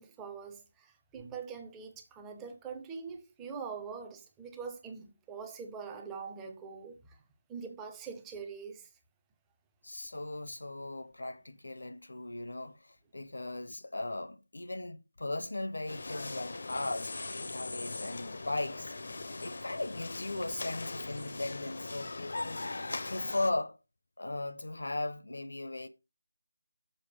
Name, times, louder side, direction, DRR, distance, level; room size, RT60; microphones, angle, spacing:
voice 1, 0.0-7.2 7.5-8.9, right 5 dB, 5° right, 0.6 m, -43 dB
voice 2, 9.8-17.2 17.5-19.0 19.4-22.7 23.0-23.8 24.2-25.9, left 2 dB, 70° left, 0.9 m, -37 dB
sound 1, 15.9-23.5, left 3 dB, 45° left, 0.6 m, -40 dB
6.8 x 4.4 x 6.3 m
figure-of-eight pair, 175°, 0 cm